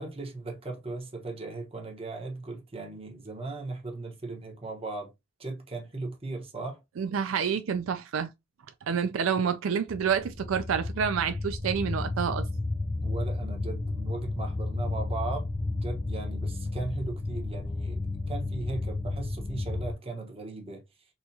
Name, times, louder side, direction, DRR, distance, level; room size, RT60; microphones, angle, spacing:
voice 1, 0.0-5.1 5.4-6.8 13.0-20.8, right 3 dB, 30° right, 1.0 m, -37 dB
voice 2, 7.0-8.3 8.9-12.4, right 7 dB, 75° right, 0.4 m, -28 dB
sound 1, 9.9-19.9, left 2 dB, 20° left, 0.3 m, -32 dB
4.2 x 2.4 x 2.7 m
head